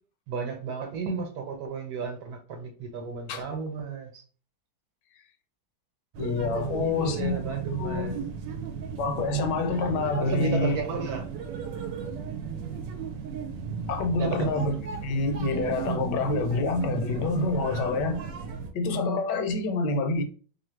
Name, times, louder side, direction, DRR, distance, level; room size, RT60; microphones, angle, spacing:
voice 1, 0.3-4.2 6.8-8.2 10.2-11.3 14.2-14.5, right 5 dB, 65° right, 1.2 m, -33 dB
sound 1, 6.1-18.7, right 6 dB, 80° right, 1.3 m, -35 dB
voice 2, 6.2-8.2 9.0-10.8 13.9-14.7 15.0-18.2 18.7-20.2, left 3 dB, 75° left, 1.2 m, -27 dB
3.1 x 2.6 x 4.3 m
omnidirectional pair, 2.0 m